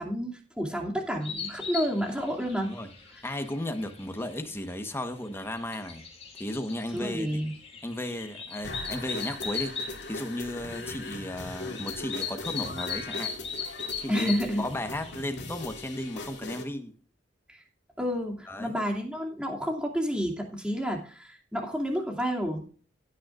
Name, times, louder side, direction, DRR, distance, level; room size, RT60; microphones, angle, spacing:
voice 1, 0.0-2.7 6.9-7.5 14.1-14.6 17.5-17.6 18.0-22.6, equal, 5° right, 2.6 m, -30 dB
sound 1, 1.2-16.2, left 6 dB, 35° left, 3.2 m, -39 dB
voice 2, 3.2-6.1 6.4-7.3 7.8-9.7 10.1-13.3 14.0-14.3 14.6-16.9 18.5-18.7, left 1 dB, 15° left, 1.2 m, -35 dB
sound 2, 8.6-16.6, left 2 dB, 65° left, 2.6 m, -40 dB
17.0 x 9.3 x 2.5 m
head